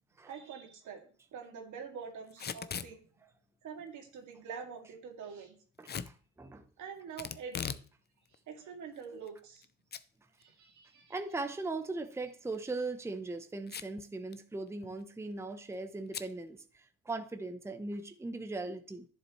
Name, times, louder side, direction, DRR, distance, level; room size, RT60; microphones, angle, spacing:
voice 1, 0.3-1.0 1.3-3.0 3.6-5.5 6.8-7.8 8.5-9.7 10.4-11.1, right 6 dB, 80° right, 2.3 m, -45 dB
Packing tape duct tape / Tearing, 2.3-2.9 5.8-6.1 7.2-7.9 8.2-8.3 9.0-9.6 9.9-10.0 10.4-10.5 12.5-12.7 13.7-14.0 14.3-14.4 14.7-15.0 16.1-16.3, left 7 dB, 35° left, 0.5 m, -39 dB
voice 2, 5.8-6.6 11.1-19.1, right 3 dB, 10° right, 0.7 m, -39 dB
11.0 x 7.3 x 3.1 m
cardioid pair, 90°, 30 cm